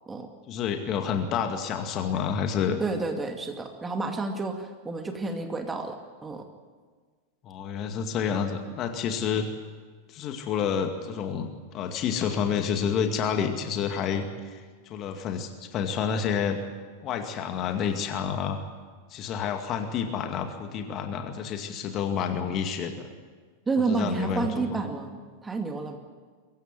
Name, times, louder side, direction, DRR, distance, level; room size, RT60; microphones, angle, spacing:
voice 1, 0.5-2.8 7.4-9.5 10.1-11.5 11.7-16.6 17.0-18.6 19.1-23.1 23.9-24.8, left 7 dB, 35° left, 6 dB, 2.2 m, -29 dB
voice 2, 2.8-6.5 23.7-26.0, right 3 dB, 15° right, 5 dB, 2.3 m, -30 dB
23.5 x 15.5 x 9.5 m, 1.5 s
figure-of-eight pair, 90°, 0 cm